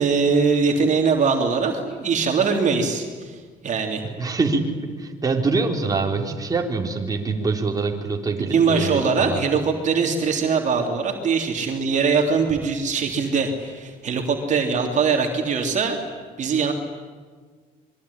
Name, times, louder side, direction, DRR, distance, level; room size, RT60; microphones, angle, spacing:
voice 1, 0.0-4.0 8.4-16.0 16.4-16.7, right 5 dB, 45° right, 3 dB, 3.4 m, -22 dB
voice 2, 4.2-4.7 5.0-9.4, right 3 dB, 20° right, 1 dB, 3.7 m, -24 dB
26.5 x 22.5 x 10.0 m, 1.5 s
cardioid pair, 110°, 17 cm